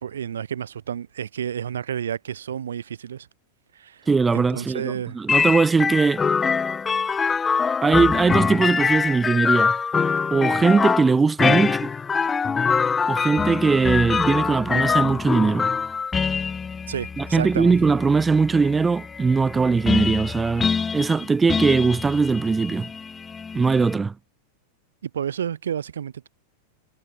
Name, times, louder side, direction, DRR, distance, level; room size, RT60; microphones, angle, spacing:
voice 1, 0.0-3.3 3.7-4.1 4.3-5.2 16.9-17.8 25.0-26.3, right 8 dB, 65° right, 3.4 m, -30 dB
voice 2, 4.1-6.2 7.8-9.7 10.3-11.9 13.1-15.7 17.2-22.9 23.5-24.1, right 4 dB, 15° right, 2.2 m, -20 dB
sound 1, 5.3-24.0, left 5 dB, 15° left, 1.1 m, -24 dB
figure-of-eight pair, 90°, 0 cm